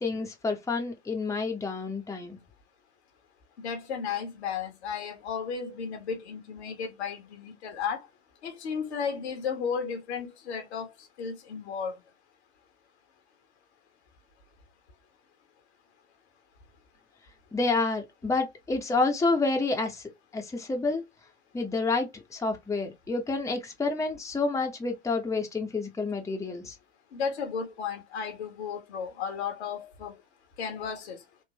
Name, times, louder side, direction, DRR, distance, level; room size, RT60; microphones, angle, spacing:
voice 1, 0.0-2.4 17.5-20.0 20.3-21.0 21.5-26.7, left 3 dB, 10° left, 1.0 m, -29 dB
voice 2, 3.6-8.1 8.4-10.9 11.2-12.0 27.1-30.2 30.6-31.2, left 6 dB, 70° left, 1.4 m, -34 dB
3.7 x 2.5 x 3.0 m
hypercardioid pair, 85°, 34 cm